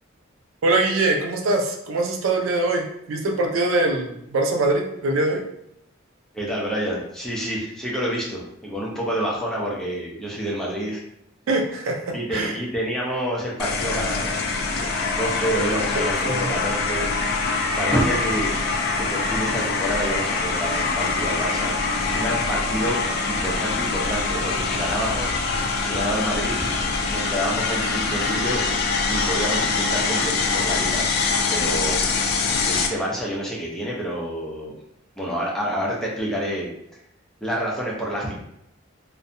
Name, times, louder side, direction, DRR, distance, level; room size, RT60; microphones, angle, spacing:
voice 1, 0.6-5.4 11.5-12.5 16.3-16.5, right 2 dB, 85° right, 2 dB, 0.4 m, -23 dB
voice 2, 6.3-11.0 12.1-14.3 14.7-17.1 17.6-18.5 19.0-21.7 22.0-23.0 23.3-26.7 27.1-28.6 29.1-31.1 31.5-32.0 32.6-34.8 35.2-36.7 37.4-38.4, equal, 5° left, -5 dB, 0.5 m, -28 dB
sound 1, 13.6-32.9, left 4 dB, 55° left, 0.3 m, -24 dB
2.6 x 2.1 x 2.5 m, 0.78 s
head